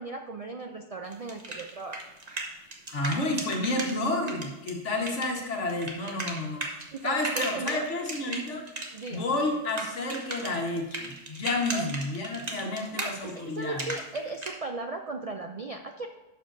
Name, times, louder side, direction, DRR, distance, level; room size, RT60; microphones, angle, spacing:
voice 1, 0.0-2.0 6.9-7.8 8.9-9.3 11.7-11.9 12.9-16.1, right 3 dB, 60° right, 5 dB, 0.4 m, -37 dB
sound 1, 1.0-3.9 4.3-9.2 9.4-14.5, right 2 dB, 35° right, 1.2 m, -36 dB
voice 2, 2.9-6.6 7.0-8.6 9.1-13.9, left 2 dB, 80° left, 1 dB, 1.6 m, -30 dB
11.5 x 7.6 x 2.6 m, 1.1 s
omnidirectional pair, 1.2 m